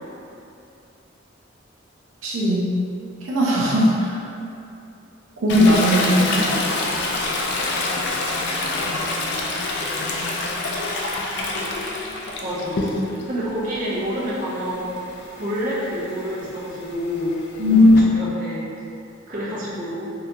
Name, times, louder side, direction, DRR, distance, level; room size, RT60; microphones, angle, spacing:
voice 1, 2.2-2.7 3.2-4.2 5.4-6.5 17.6-18.0, left 1 dB, 85° right, -6 dB, 0.5 m, -17 dB
Toilet flush, 5.5-13.3 13.7-18.0, left 2 dB, 60° left, 0.4 m, -27 dB
voice 2, 12.4-17.4 17.7-18.7 19.3-20.1, equal, 45° right, -8 dB, 0.7 m, -28 dB
3.8 x 2.9 x 2.2 m, 2.6 s
head